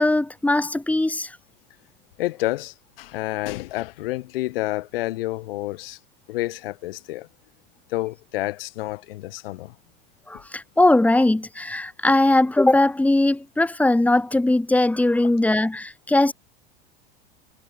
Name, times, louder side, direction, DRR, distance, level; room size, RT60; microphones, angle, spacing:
voice 1, 0.0-1.4 10.3-16.3, left 2 dB, 5° left, 3.1 m, -20 dB
voice 2, 2.2-6.0 6.3-7.3 7.9-9.7, left 18 dB, 75° left, 4.4 m, -29 dB
supercardioid pair, 120°, 29 cm